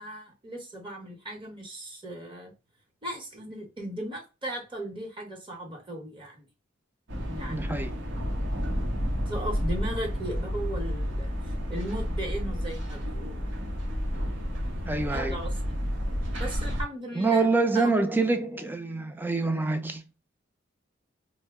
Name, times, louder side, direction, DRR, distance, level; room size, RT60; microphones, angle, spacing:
voice 1, 0.0-2.5 3.0-6.5 7.2-8.2 9.3-13.5 15.0-15.8 16.4-17.5 17.7-17.9, right 1 dB, 25° right, 0.9 m, -37 dB
sound 1, 7.1-16.8, equal, 65° right, 0.8 m, -31 dB
voice 2, 7.5-7.9 14.9-15.4 17.1-20.0, right 3 dB, 10° right, 0.4 m, -26 dB
2.7 x 2.1 x 3.3 m
head